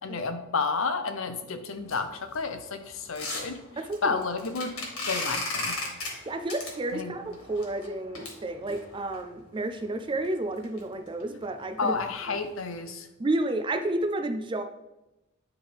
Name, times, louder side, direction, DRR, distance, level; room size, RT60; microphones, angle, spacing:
voice 1, 0.0-3.6 4.0-4.7 5.0-5.8 6.9-7.1 11.8-13.1, left 4 dB, 65° left, 8 dB, 0.6 m, -31 dB
sound 1, 1.8-9.2 9.8-9.9 10.2-10.3 10.6-10.8 11.1-11.2 11.6-11.9 12.1-12.2 12.7-12.8, left 2 dB, 85° left, 1.7 m, -36 dB
voice 2, 3.8-4.2 6.3-11.9 12.3-12.4 13.2-14.6, right 2 dB, 25° right, 7 dB, 0.4 m, -31 dB
9.8 x 3.5 x 3.4 m, 0.97 s
head